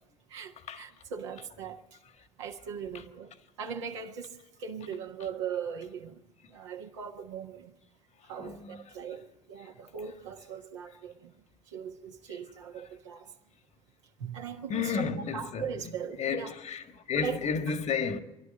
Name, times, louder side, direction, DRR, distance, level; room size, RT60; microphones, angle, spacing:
voice 1, 0.3-1.8 2.4-6.2 6.5-7.7 8.3-11.3 11.7-13.3 14.2-15.0 15.3-16.5 17.1-17.7, right 7 dB, 80° right, 1.4 m, -39 dB
voice 2, 8.4-8.8 14.7-15.7 16.2-18.2, left 6 dB, 50° left, 1.7 m, -32 dB
24.5 x 11.5 x 9.3 m
hypercardioid pair, 55°, 15 cm